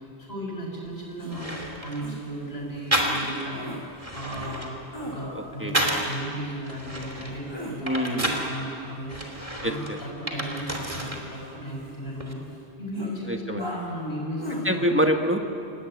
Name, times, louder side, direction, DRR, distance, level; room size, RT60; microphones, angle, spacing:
voice 1, 0.0-3.7 4.1-4.7 5.0-9.2 9.6-12.4 12.8-14.9, equal, 70° left, -3 dB, 7.2 m, -35 dB
sound 1, 0.9-1.0 1.3-2.1 2.9-3.5 3.9-6.2 6.6-8.5 9.1-11.2 11.5-12.3, right 1 dB, 35° right, 3.1 m, -30 dB
sound 2, 1.2-1.4 2.0-2.2 3.2-3.8 4.4-4.6 4.9-5.2 7.3-7.8 10.8-12.1 12.5-12.6 12.9-13.1 13.6-13.9 14.4-14.6, equal, 25° left, 6.0 m, -38 dB
voice 2, 5.3-5.8 7.8-8.4 9.6-9.7 13.3-13.6 14.6-15.4, equal, 10° right, 4 dB, 1.6 m, -25 dB
26.5 x 19.0 x 9.4 m, 2.7 s
omnidirectional pair, 1.1 m